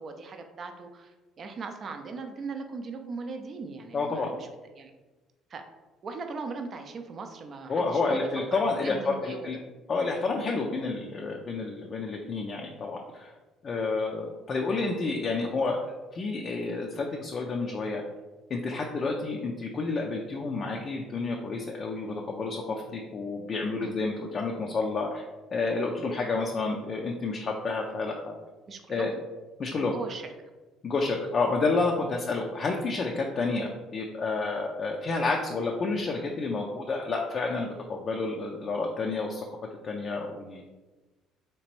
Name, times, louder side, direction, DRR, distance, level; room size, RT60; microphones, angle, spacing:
voice 1, 0.0-4.5 4.8-4.9 5.5-5.6 6.0-8.2 8.5-9.6 23.8-23.9 28.7-29.2 29.7-30.3, right 4 dB, 45° right, 6 dB, 0.5 m, -39 dB
voice 2, 3.9-4.3 7.7-9.6 9.9-13.3 13.6-18.1 18.5-25.2 25.5-28.3 28.9-29.1 29.6-30.0 30.8-39.4 39.8-40.6, left 3 dB, 45° left, 0 dB, 0.4 m, -30 dB
3.3 x 2.9 x 3.0 m, 1.2 s
supercardioid pair, 85°, 0 cm